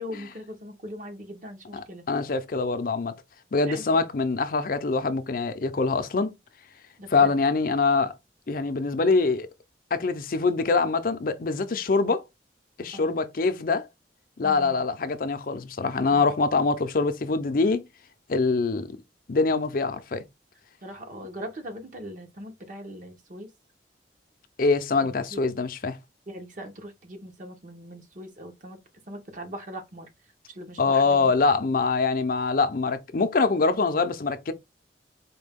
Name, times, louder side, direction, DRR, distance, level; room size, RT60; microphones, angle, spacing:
voice 1, 0.0-2.1 3.7-4.0 7.0-7.3 12.9-13.2 14.4-14.8 16.1-16.3 20.8-23.5 25.0-25.4 26.3-28.8 29.1-30.1 30.5-31.3, equal, 45° right, 0.9 m, -40 dB
voice 2, 1.7-3.1 3.5-6.3 7.1-8.1 8.5-9.5 9.9-12.2 12.8-13.9 14.4-17.8 18.3-18.9 19.3-20.2 24.6-26.0 30.8-34.5, left 4 dB, 55° left, 0.5 m, -24 dB
4.3 x 2.2 x 3.5 m
head